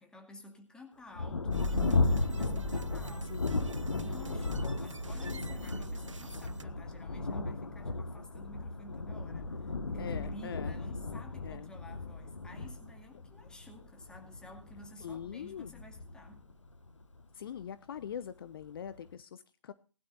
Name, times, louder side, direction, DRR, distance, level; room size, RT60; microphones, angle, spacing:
voice 1, 0.0-3.5 4.0-16.5, left 1 dB, 5° left, 4 dB, 2.3 m, -52 dB
Thunder, 1.1-17.2 18.0-18.1 18.6-19.1, left 3 dB, 75° left, 1.4 m, -35 dB
sound 1, 1.5-6.6, right 3 dB, 80° right, 1.0 m, -44 dB
voice 2, 3.2-3.7 10.0-10.8 11.4-11.7 13.1-13.2 15.0-15.8 17.3-19.7, left 8 dB, 50° left, 14 dB, 0.8 m, -43 dB
19.5 x 12.0 x 2.6 m, 0.37 s
figure-of-eight pair, 130°, 16 cm